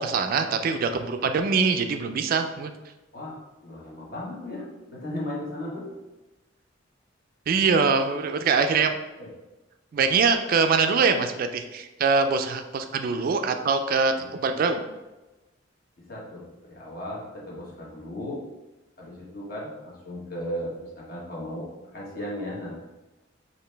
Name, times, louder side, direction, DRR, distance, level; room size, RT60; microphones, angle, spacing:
voice 1, 0.0-2.7 7.5-9.0 9.9-14.8, right 5 dB, 50° right, 7 dB, 0.3 m, -23 dB
voice 2, 3.1-5.9 9.2-9.3 14.1-14.3 16.0-18.4 19.0-22.8, left 1 dB, 50° left, -5 dB, 1.3 m, -36 dB
4.9 x 2.8 x 3.3 m, 1.1 s
head